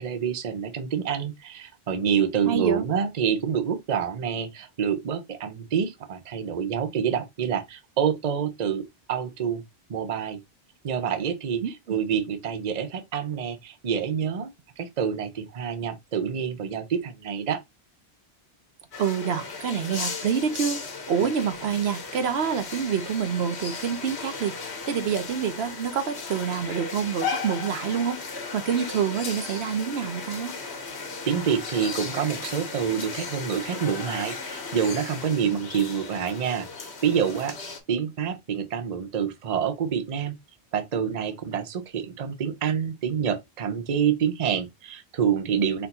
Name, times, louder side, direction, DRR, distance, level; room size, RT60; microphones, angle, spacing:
voice 1, 0.0-9.6 9.9-10.4 10.8-14.5 14.8-17.6 31.2-40.3 40.7-45.9, right 7 dB, 45° right, 0.7 m, -27 dB
voice 2, 2.4-2.9 11.6-11.7 19.0-28.2 28.5-30.5, right 7 dB, 75° right, 0.9 m, -27 dB
sound 1, 18.9-37.8, left 4 dB, 85° left, 1.4 m, -36 dB
4.3 x 2.6 x 4.1 m
omnidirectional pair, 1.1 m